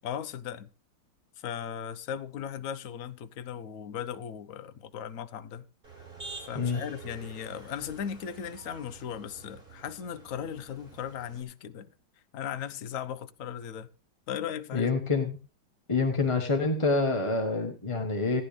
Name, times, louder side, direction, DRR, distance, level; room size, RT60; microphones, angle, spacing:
voice 1, 0.0-0.7 1.4-5.6 6.5-11.9 12.3-13.9 14.3-14.9, left 8 dB, 60° left, 0.9 m, -37 dB
Motor vehicle (road), 5.8-11.4, right 3 dB, 30° right, 4.6 m, -47 dB
voice 2, 14.7-15.4 15.9-18.4, left 3 dB, 20° left, 1.0 m, -27 dB
16.5 x 10.5 x 3.3 m
omnidirectional pair, 2.0 m